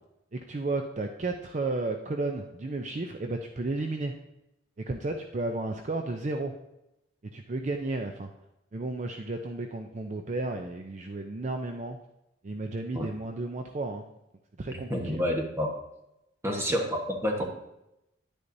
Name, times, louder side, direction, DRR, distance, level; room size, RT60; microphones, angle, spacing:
voice 1, 0.5-4.1 4.8-6.5 7.3-8.3 8.7-12.0 12.4-14.0 14.6-15.2 16.5-16.6, right 2 dB, 40° right, 4 dB, 0.5 m, -33 dB
voice 2, 14.7-15.7 16.4-17.4, equal, 15° right, 1 dB, 1.2 m, -29 dB
10.0 x 9.7 x 2.7 m, 0.89 s
head